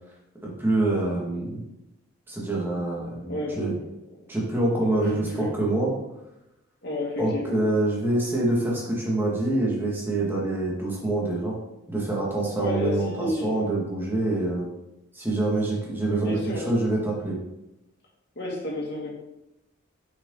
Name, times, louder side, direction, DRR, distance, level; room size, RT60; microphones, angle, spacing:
voice 1, 0.4-1.6 2.3-3.7 4.3-5.9 7.2-11.6 11.9-14.7 15.1-17.4, right 2 dB, 10° right, -4 dB, 2.3 m, -26 dB
voice 2, 5.0-5.5 6.8-7.6 12.6-13.6 16.1-16.6 18.4-19.1, left 1 dB, 50° left, -2 dB, 2.5 m, -31 dB
8.2 x 7.0 x 4.0 m, 0.91 s
head